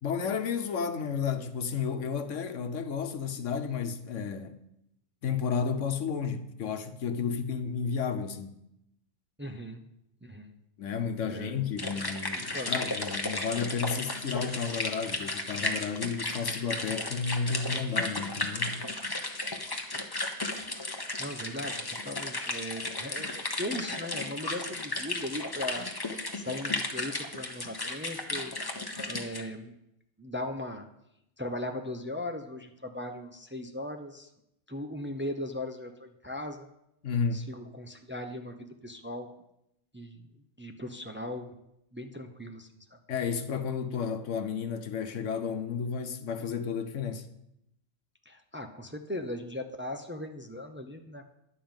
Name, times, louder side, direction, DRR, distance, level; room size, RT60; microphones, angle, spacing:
voice 1, 0.0-4.6 5.2-8.6 10.8-18.8 37.0-37.4 43.1-47.3, left 6 dB, 80° left, 1.3 m, -32 dB
voice 2, 9.4-9.8 10.2-10.5 11.3-11.6 12.4-12.7 21.2-25.9 26.4-28.5 29.1-29.7 30.2-30.9 31.4-34.3 34.7-36.7 37.3-38.5 38.8-39.3 39.9-40.3 40.6-41.6 41.9-43.0 48.3-51.2, left 1 dB, 10° right, 0.7 m, -38 dB
sound 1, 11.8-29.4, left 2 dB, 20° left, 1.1 m, -34 dB
11.0 x 5.7 x 8.9 m
omnidirectional pair, 1.3 m